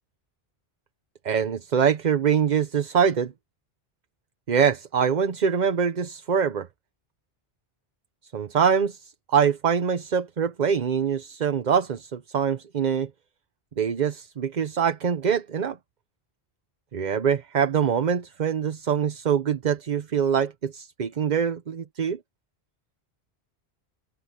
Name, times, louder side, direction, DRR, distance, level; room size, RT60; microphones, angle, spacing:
voice 1, 1.2-3.3 4.5-6.7 8.3-9.0 9.3-13.1 13.8-15.8 16.9-22.2, right 7 dB, 50° right, 0.8 m, -24 dB
open air
omnidirectional pair, 1.0 m